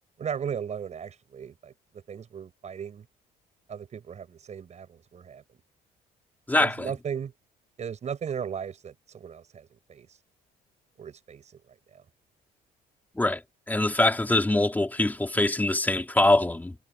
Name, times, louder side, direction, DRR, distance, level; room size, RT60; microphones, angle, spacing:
voice 1, 0.2-3.1 3.7-5.4 6.6-7.3 7.8-10.1 11.0-11.6 11.9-12.0, right 7 dB, 40° right, 6.3 m, -36 dB
voice 2, 6.5-6.9 13.2-13.4 13.7-16.7, left 2 dB, 10° left, 3.5 m, -23 dB
cardioid pair, 110°, 17 cm